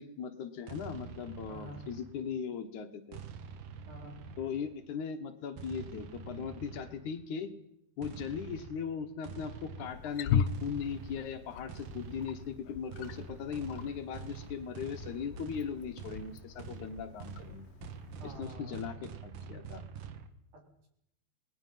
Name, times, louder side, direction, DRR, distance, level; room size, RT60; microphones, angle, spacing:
voice 1, 0.0-3.2 4.4-7.5 8.0-17.7 18.2-19.8, left 7 dB, 65° left, 7 dB, 2.6 m, -39 dB
sound 1, 0.7-2.4 3.1-4.8 5.6-7.2 8.0-20.3, right 6 dB, 85° right, 3.1 m, -47 dB
voice 2, 1.5-1.8 3.9-4.2 18.2-18.8 20.5-20.9, equal, 65° right, 1 dB, 5.8 m, -48 dB
Wild animals, 9.9-18.4, left 7 dB, 90° left, 2.7 m, -39 dB
27.5 x 20.0 x 5.7 m, 0.80 s
omnidirectional pair, 3.8 m